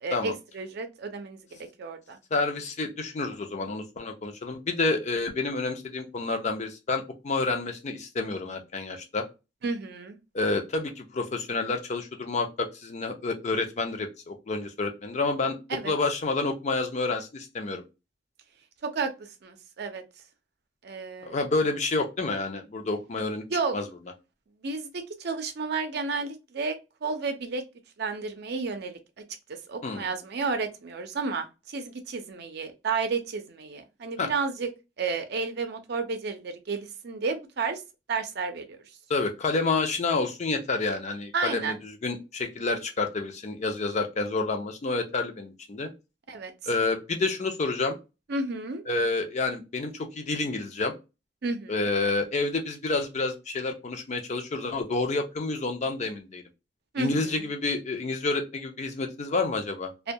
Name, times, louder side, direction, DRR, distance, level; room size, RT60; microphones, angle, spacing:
voice 1, 0.0-2.2 9.6-10.2 15.7-15.9 18.8-20.0 20.8-21.4 23.5-23.8 24.6-27.6 28.0-29.0 29.5-34.7 35.0-37.8 38.1-38.8 41.3-41.8 46.3-46.5 48.3-48.8 51.4-51.9 56.9-57.5 60.0-60.1, right 4 dB, 65° right, 0.5 m, -32 dB
voice 2, 2.3-9.2 10.3-15.6 15.8-17.8 21.2-23.4 23.7-23.9 29.8-30.1 34.2-34.3 39.1-45.9 46.7-48.0 48.9-50.9 51.7-56.4 57.0-59.9, left 3 dB, 40° left, 0.5 m, -29 dB
2.2 x 2.2 x 2.6 m
head